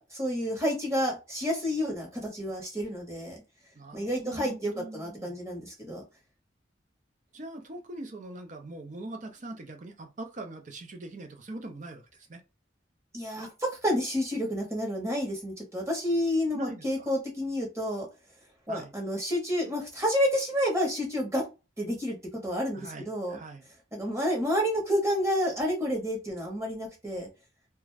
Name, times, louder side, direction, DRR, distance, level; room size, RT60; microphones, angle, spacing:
voice 1, 0.1-3.4 3.9-6.0 13.1-18.1 18.7-21.4 21.8-22.2 22.4-23.4 23.9-27.3, equal, 15° right, 1.0 m, -29 dB
voice 2, 3.7-5.4 7.3-12.4 16.5-17.1 18.7-18.9 22.7-23.6, right 2 dB, 40° right, 0.6 m, -42 dB
2.5 x 2.2 x 3.2 m
head